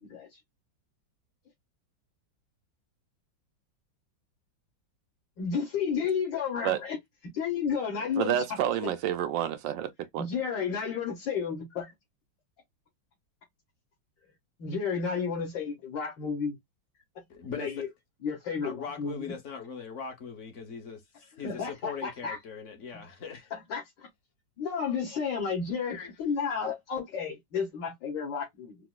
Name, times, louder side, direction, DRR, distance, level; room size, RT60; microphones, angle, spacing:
voice 1, 5.4-7.0 7.3-8.9 10.2-11.9 14.6-16.6 17.6-17.9 18.2-19.3 21.4-22.4 22.9-23.0 23.5-24.1 24.6-28.8, left 6 dB, 70° left, 2.0 m, -32 dB
voice 2, 8.2-10.3, right 10 dB, 75° right, 1.2 m, -29 dB
voice 3, 17.3-17.8 18.6-23.5 25.9-26.1, left 6 dB, 50° left, 1.1 m, -40 dB
4.7 x 2.0 x 2.2 m
omnidirectional pair, 2.1 m